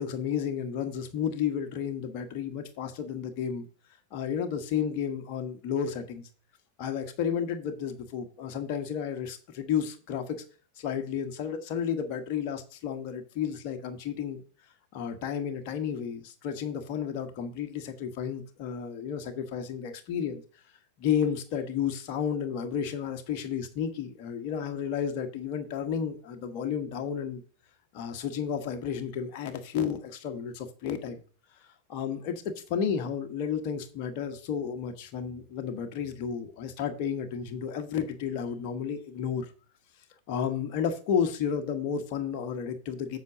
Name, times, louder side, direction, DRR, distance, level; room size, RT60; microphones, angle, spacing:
voice 1, 0.0-3.6 4.1-6.3 6.8-10.4 10.8-14.4 14.9-20.4 21.0-27.4 27.9-31.2 31.9-32.4 32.7-39.5 40.3-43.2, left 8 dB, 40° left, 1.4 m, -32 dB
8.2 x 5.2 x 6.1 m
figure-of-eight pair, 90°, 0 cm